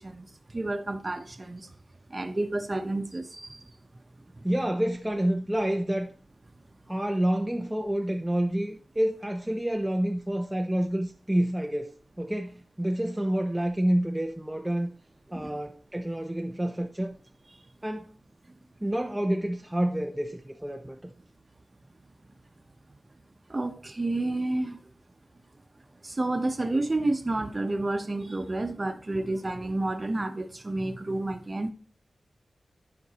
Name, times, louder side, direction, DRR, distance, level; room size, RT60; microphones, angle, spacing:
voice 1, 0.0-1.7 2.1-3.6 15.3-15.6 23.5-24.8 26.0-31.7, right 2 dB, 30° right, 0.8 m, -30 dB
voice 2, 4.4-6.1 6.9-14.9 15.3-17.2 17.8-18.1 18.8-21.0, right 1 dB, 10° right, 0.5 m, -28 dB
12.0 x 5.2 x 2.9 m
wide cardioid pair, 120°, 0 cm